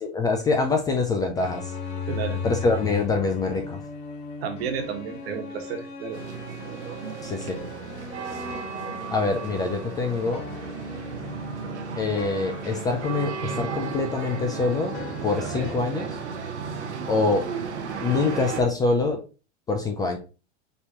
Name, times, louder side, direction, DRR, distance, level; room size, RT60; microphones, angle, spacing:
voice 1, 0.0-1.7 2.4-3.8 7.2-7.6 9.1-10.4 12.0-14.9 15.2-16.2 17.1-17.4 18.0-19.2 19.7-20.2, left 3 dB, 10° left, 0.3 m, -25 dB
sound 1, 1.4-15.7, left 4 dB, 50° left, 1.5 m, -37 dB
voice 2, 2.0-2.4 4.4-6.2, right 7 dB, 65° right, 1.5 m, -32 dB
sound 2, 6.1-18.6, right 6 dB, 90° right, 1.1 m, -34 dB
5.3 x 3.0 x 2.9 m
hypercardioid pair, 125°, 33 cm